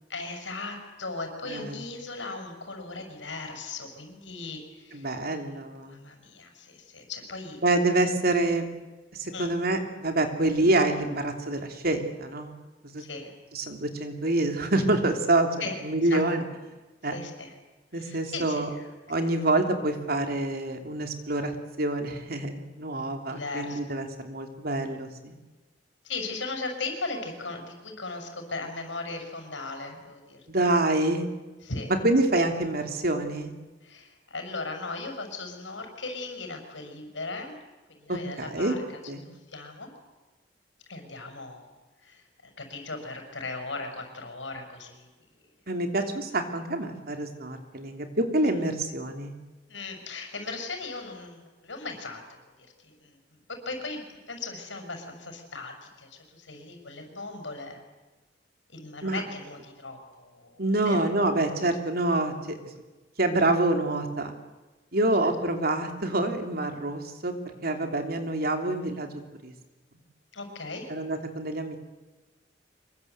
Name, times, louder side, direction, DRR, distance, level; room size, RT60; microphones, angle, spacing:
voice 1, 0.1-5.2 5.9-7.6 9.3-9.5 13.0-13.3 15.6-16.2 17.0-17.5 17.9-18.9 19.2-19.4 23.3-24.0 26.0-30.7 31.6-31.9 33.8-37.6 38.0-38.8 39.5-39.9 40.9-45.1 45.4-45.5 49.7-52.5 52.8-53.2 53.5-54.0 54.3-57.8 58.7-61.0 70.3-70.9, left 3 dB, 90° left, 5 dB, 6.1 m, -38 dB
voice 2, 1.4-1.8 4.9-6.0 7.6-8.7 9.1-12.5 12.9-13.0 13.5-15.5 15.8-16.4 17.0-17.2 17.9-18.7 19.1-21.5 21.8-25.3 30.5-31.3 32.0-33.5 38.1-38.8 39.1-39.2 45.7-49.3 59.0-59.2 60.6-62.6 63.2-64.3 64.9-67.3 67.6-69.5 70.9-71.8, right 2 dB, 55° right, 5 dB, 3.1 m, -26 dB
25.5 x 22.5 x 8.2 m, 1.2 s
head